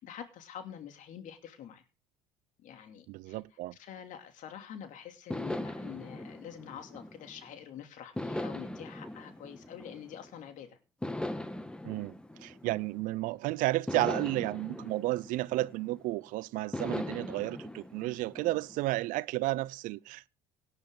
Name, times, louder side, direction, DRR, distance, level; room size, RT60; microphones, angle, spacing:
voice 1, 0.0-1.8 2.6-3.4 3.7-10.8, left 9 dB, 60° left, 2.9 m, -46 dB
voice 2, 3.1-3.8 11.8-12.1 12.4-20.3, right 18 dB, 65° right, 0.6 m, -32 dB
sound 1, 5.3-7.6 8.1-10.4 11.0-13.3 13.9-16.1 16.7-19.0, left 1 dB, 5° left, 1.5 m, -40 dB
18.0 x 10.0 x 3.9 m
hypercardioid pair, 65°, 15 cm